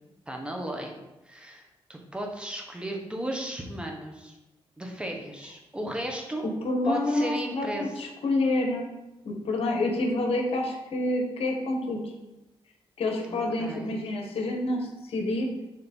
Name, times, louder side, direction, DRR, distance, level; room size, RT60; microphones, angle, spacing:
voice 1, 0.3-0.9 1.2-4.4 4.8-6.4 6.8-7.9 13.3-14.0, right 1 dB, 10° right, 1 dB, 1.2 m, -35 dB
voice 2, 6.4-8.9 9.2-12.0 13.0-15.6, left 2 dB, 70° left, 1 dB, 1.3 m, -28 dB
7.0 x 3.2 x 4.4 m, 0.98 s
cardioid pair, 85°, 10 cm